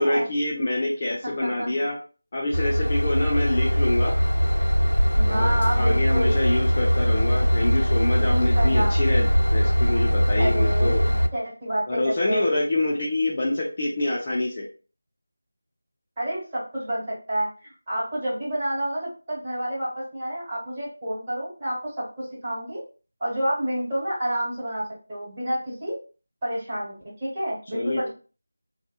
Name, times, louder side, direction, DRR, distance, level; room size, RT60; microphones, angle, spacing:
voice 1, 0.0-2.0 2.3-4.1 5.2-11.0 11.9-14.7 27.7-28.1, left 1 dB, 30° left, -4 dB, 0.4 m, -26 dB
voice 2, 1.2-1.7 5.2-6.3 8.2-8.9 10.4-12.5 16.2-22.8 23.2-26.0 26.4-28.1, right 1 dB, 20° right, -9 dB, 1.4 m, -29 dB
Train / Engine, 2.5-11.3, equal, 90° left, 0.3 m, -21 dB
2.6 x 2.1 x 2.3 m, 0.36 s
figure-of-eight pair, 165°, 0 cm